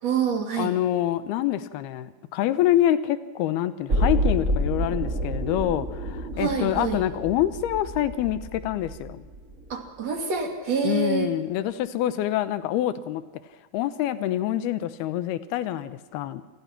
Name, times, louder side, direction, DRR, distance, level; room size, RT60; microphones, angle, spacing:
voice 1, 0.0-0.7 6.3-7.0 9.7-11.3, right 6 dB, 45° right, 4 dB, 3.4 m, -26 dB
voice 2, 0.6-9.2 10.8-13.2 13.7-16.4, left 12 dB, 85° left, 12 dB, 3.0 m, -26 dB
sound 1, 3.9-9.9 10.2-10.3, right 1 dB, 25° right, 2.3 m, -29 dB
28.5 x 20.0 x 6.0 m, 1.4 s
omnidirectional pair, 4.4 m